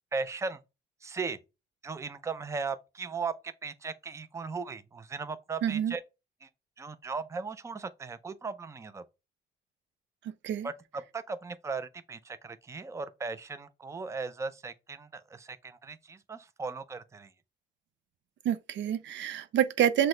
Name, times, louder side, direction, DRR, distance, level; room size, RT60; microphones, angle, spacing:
voice 1, 0.1-0.6 1.0-1.4 1.8-6.0 6.4-6.5 6.8-9.0 10.6-17.3, right 4 dB, 15° right, 0.4 m, -37 dB
voice 2, 5.6-5.9 10.4-10.7 18.4-20.1, right 10 dB, 70° right, 0.5 m, -27 dB
6.0 x 2.2 x 3.7 m
cardioid pair, 90°, 20 cm